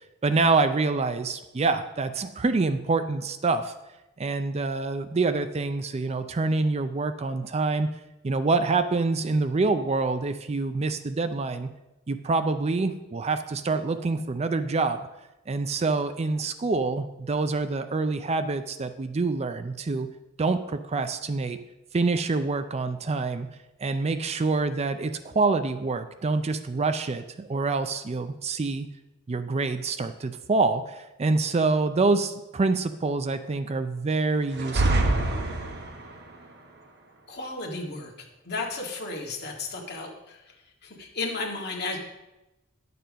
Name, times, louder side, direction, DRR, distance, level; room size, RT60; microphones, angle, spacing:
voice 1, 0.2-3.7 4.2-7.9 8.2-11.7 12.1-15.1 15.5-20.1 20.4-21.6 21.9-23.5 23.8-28.9 29.3-35.1, right 3 dB, 30° right, 10 dB, 0.4 m, -26 dB
sound 1, 34.5-36.2, right 2 dB, 50° right, 1.1 m, -25 dB
voice 2, 37.3-40.5 40.8-42.0, left 3 dB, 50° left, 0 dB, 1.8 m, -34 dB
10.5 x 6.8 x 5.2 m, 0.98 s
head